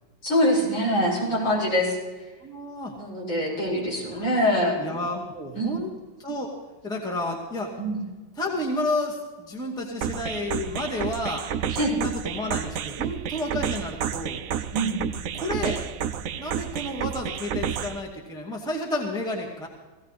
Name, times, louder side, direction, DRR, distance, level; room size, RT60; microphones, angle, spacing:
voice 1, 0.2-2.0 3.0-4.8 5.5-5.8 7.8-8.0 11.8-11.9 14.7-15.0, equal, 65° left, -5 dB, 6.8 m, -24 dB
voice 2, 2.4-2.9 4.1-4.3 4.7-5.9 6.2-6.5 6.8-7.7 8.4-11.4 11.9-14.4 15.3-15.8 16.4-19.7, left 1 dB, ahead, -1 dB, 2.0 m, -31 dB
sound 1, 10.0-18.0, right 8 dB, 75° right, 0.7 m, -30 dB
17.0 x 16.0 x 4.2 m, 1.3 s
omnidirectional pair, 2.3 m